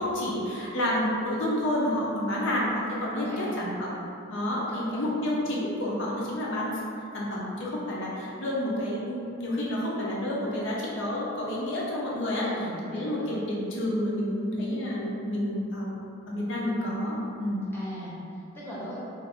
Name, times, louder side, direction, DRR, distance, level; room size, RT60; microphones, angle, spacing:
voice 1, 0.0-4.0 4.3-6.7 7.1-12.5 12.8-16.0 16.3-17.7, left 1 dB, 60° left, -4 dB, 0.6 m, -29 dB
voice 2, 3.2-3.7 4.7-5.1 12.4-13.3 17.7-19.0, equal, 10° left, -9 dB, 0.7 m, -40 dB
2.6 x 2.4 x 3.4 m, 2.6 s
head